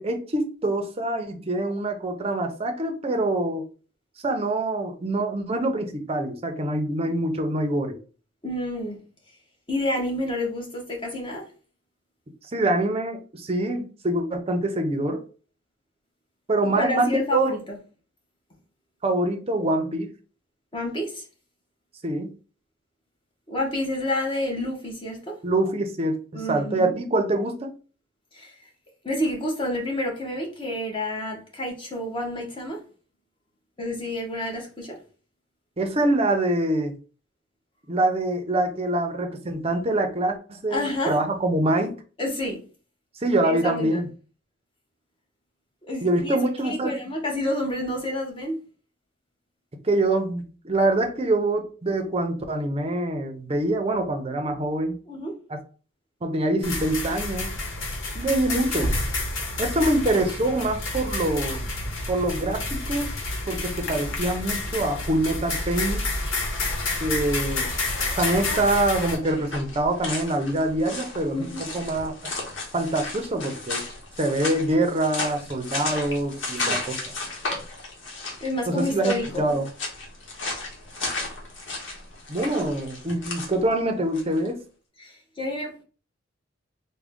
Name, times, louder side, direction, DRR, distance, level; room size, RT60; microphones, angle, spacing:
voice 1, 0.0-3.6 4.2-8.0 12.5-15.2 16.5-17.6 19.0-20.1 22.0-22.3 25.4-27.7 35.8-36.9 37.9-41.9 43.2-44.1 46.0-47.0 49.8-55.0 55.5-55.6 56.2-57.5 58.1-58.9 59.6-61.6 62.1-63.1 63.5-66.1 67.0-67.7 68.2-72.3 72.7-73.8 74.2-77.0 78.7-79.6 82.3-84.6, right 1 dB, 30° right, 0.6 m, -25 dB
voice 2, 8.4-9.0 9.7-11.4 16.7-17.8 20.7-21.2 23.5-25.3 26.3-26.9 28.3-28.5 29.0-32.8 33.8-34.9 40.7-41.2 42.2-42.6 43.4-44.0 45.9-48.6 55.1-55.3 71.3-71.6 76.6-76.8 78.4-79.4 85.0-85.8, left 1 dB, 25° left, 1.0 m, -29 dB
sound 1, 56.6-69.1, left 2 dB, 90° left, 1.0 m, -29 dB
sound 2, 66.9-84.5, left 2 dB, 70° left, 1.1 m, -35 dB
3.6 x 2.2 x 3.5 m
head